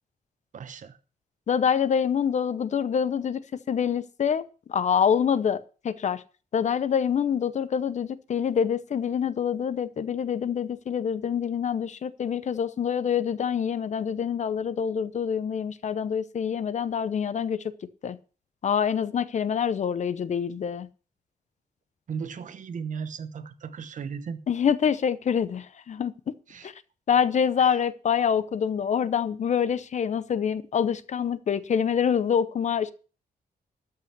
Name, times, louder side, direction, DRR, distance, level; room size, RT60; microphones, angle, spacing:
voice 1, 0.5-1.0 22.1-24.4 26.5-26.7 27.6-27.8, right 6 dB, 55° right, 1.1 m, -36 dB
voice 2, 1.5-6.2 6.5-17.6 18.0-18.2 18.6-20.9 24.5-26.4 26.6-26.7 27.1-32.9, left 7 dB, 50° left, 0.8 m, -26 dB
13.0 x 5.7 x 8.1 m
wide cardioid pair, 155°, 16 cm